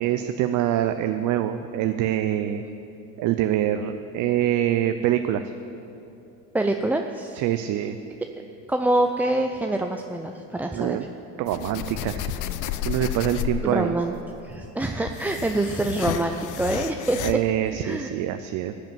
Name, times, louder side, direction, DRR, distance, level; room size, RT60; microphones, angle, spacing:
voice 1, 0.0-2.6 3.2-5.5 7.4-8.0 10.7-11.0 11.4-12.3 12.8-14.0 17.2-18.7, right 11 dB, 55° right, 9 dB, 0.6 m, -25 dB
voice 2, 6.5-7.4 8.7-11.0 13.6-14.2 14.4-17.4 17.8-18.1, right 2 dB, 5° right, 4 dB, 0.3 m, -25 dB
sound 1, 11.5-13.8 14.7-17.4, left 11 dB, 55° left, 0.6 m, -31 dB
14.5 x 5.0 x 9.3 m, 2.8 s
supercardioid pair, 95°, 37 cm